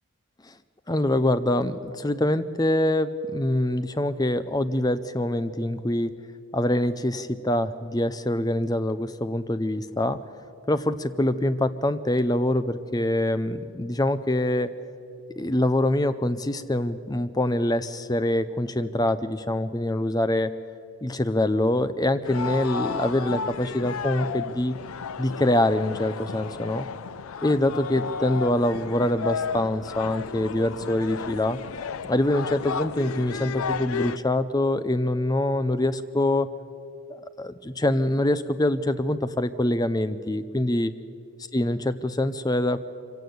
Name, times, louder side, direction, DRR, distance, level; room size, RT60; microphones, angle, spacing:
voice 1, 0.9-6.1 6.5-10.2 10.7-14.7 15.4-20.5 21.0-24.7 25.2-26.9 27.4-31.6 32.0-36.5 37.1-40.9 41.5-42.9, left 1 dB, 15° left, 12 dB, 0.6 m, -25 dB
sound 1, 22.2-34.2, left 6 dB, 75° left, 0.5 m, -33 dB
24.5 x 16.5 x 7.9 m, 2.5 s
head